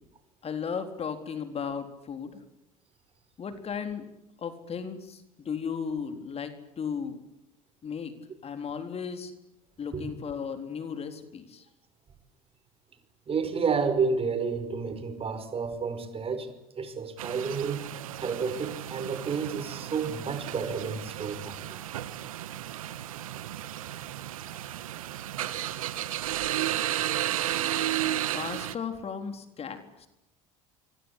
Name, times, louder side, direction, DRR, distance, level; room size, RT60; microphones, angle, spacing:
voice 1, 0.4-2.4 3.4-4.1 4.4-7.2 7.8-8.1 8.4-9.3 9.8-11.7 28.3-30.1, left 6 dB, 35° left, 7 dB, 3.9 m, -35 dB
voice 2, 13.3-17.9 18.2-21.6, right 5 dB, 35° right, 11 dB, 5.5 m, -30 dB
sound 1, 17.2-28.8, right 13 dB, 80° right, 1.6 m, -33 dB
26.5 x 24.5 x 8.4 m, 0.92 s
hypercardioid pair, 75°, 18 cm